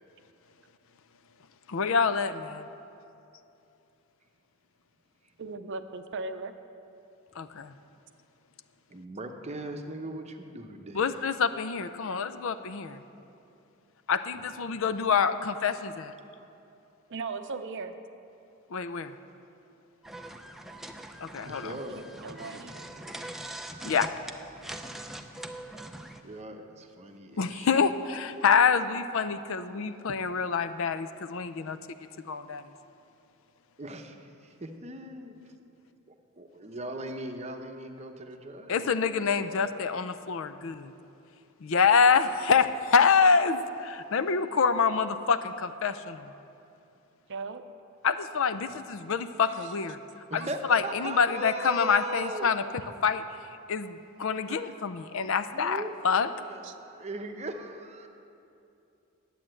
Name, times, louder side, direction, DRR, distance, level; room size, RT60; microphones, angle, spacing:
voice 1, 1.7-2.7 7.4-7.7 10.9-13.0 14.1-16.1 18.7-19.1 21.2-21.7 23.8-24.1 27.4-31.8 32.3-32.6 38.7-40.9 41.6-46.3 48.0-50.0 50.3-50.4 50.7-52.6 53.0-53.2 53.7-56.3, left 5 dB, 60° left, 11 dB, 0.5 m, -26 dB
voice 2, 5.4-6.5 17.1-17.9 21.9-22.7 47.3-47.6 56.6-56.8, right 4 dB, 55° right, 9 dB, 0.6 m, -37 dB
voice 3, 8.9-11.1 14.7-14.8 21.3-23.2 26.2-27.8 33.8-35.4 36.1-39.8 48.5-48.8 50.3-52.5 54.5-54.9 55.5-56.0 56.4-58.1, right 2 dB, 30° right, 5 dB, 0.8 m, -40 dB
sound 1, 20.0-26.2, right 1 dB, ahead, 0.4 m, -42 dB
10.0 x 8.5 x 7.6 m, 2.7 s
head